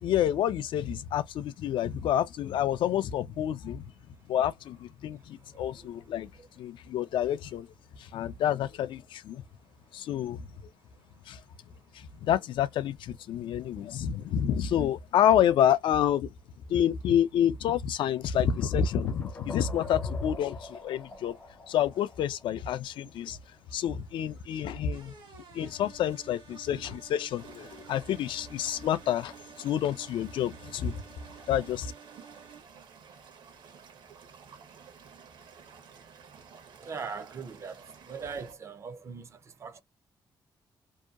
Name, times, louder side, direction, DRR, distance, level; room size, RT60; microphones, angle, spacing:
voice 1, 0.0-3.9 4.3-6.3 6.6-7.7 8.1-9.4 9.9-10.4 11.3-11.4 12.0-16.3 16.7-21.3 21.7-23.4 23.7-25.1 25.5-29.3 29.6-31.0 31.5-31.9, left 10 dB, 85° left, 0.4 m, -28 dB
sound 1, 18.4-23.4, left 2 dB, 25° left, 0.4 m, -47 dB
sound 2, 24.9-32.6, right 6 dB, 85° right, 1.1 m, -52 dB
sound 3, 27.4-38.5, right 6 dB, 65° right, 0.8 m, -52 dB
voice 2, 36.8-39.3 39.6-39.8, right 5 dB, 35° right, 0.4 m, -40 dB
2.7 x 2.2 x 2.2 m
wide cardioid pair, 160°, 8 cm